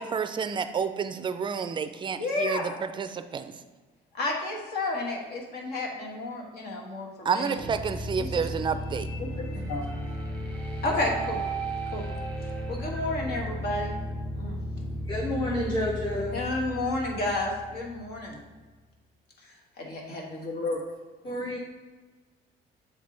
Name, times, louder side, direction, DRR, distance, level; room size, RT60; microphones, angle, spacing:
voice 1, 0.0-3.5 7.2-9.1, right 6 dB, 30° right, 10 dB, 0.4 m, -30 dB
voice 2, 2.2-2.7 4.1-7.6 8.2-8.5 9.2-9.8 10.8-11.4 11.9-12.1 12.7-13.9 14.4-14.6 16.3-18.4 19.4-20.8, left 2 dB, 70° left, 0 dB, 1.4 m, -31 dB
sound 1, 7.6-18.5, equal, 10° left, 1.1 m, -35 dB
voice 3, 14.8-16.5 21.2-21.6, left 1 dB, 25° left, -2 dB, 0.9 m, -30 dB
7.1 x 3.5 x 3.8 m, 1.3 s
cardioid pair, 110°, 17 cm